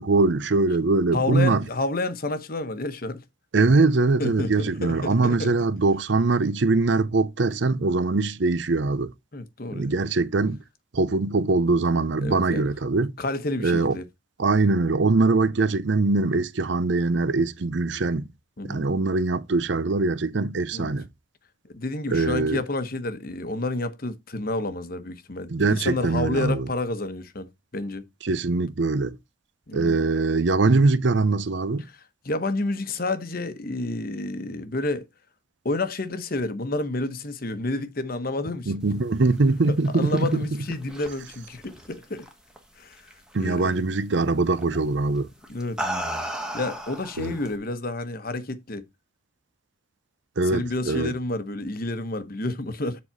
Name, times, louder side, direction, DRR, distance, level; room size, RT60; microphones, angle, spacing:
voice 1, 0.0-1.6 3.5-9.1 9.7-10.6 10.9-13.1 13.6-14.0 14.4-18.3 18.6-21.1 22.1-22.6 25.5-26.7 28.2-29.2 29.7-31.9 38.7-40.5 43.3-45.3 47.2-47.3 50.4-51.1, right 3 dB, 60° right, 0.6 m, -22 dB
voice 2, 1.1-3.2 4.2-5.5 9.3-9.9 12.2-12.7 13.2-14.1 18.6-18.9 20.7-20.9 21.7-27.5 27.7-28.0 29.7-30.0 31.8-35.1 35.6-38.7 39.7-42.3 42.8-43.0 43.4-43.8 45.5-45.8 46.5-48.8 50.4-53.0, left 2 dB, 45° left, 1.0 m, -30 dB
sound 1, 39.7-42.6 42.9-43.3 44.6-44.8 45.4-47.6, right 1 dB, 5° right, 1.3 m, -34 dB
7.5 x 4.0 x 5.6 m
head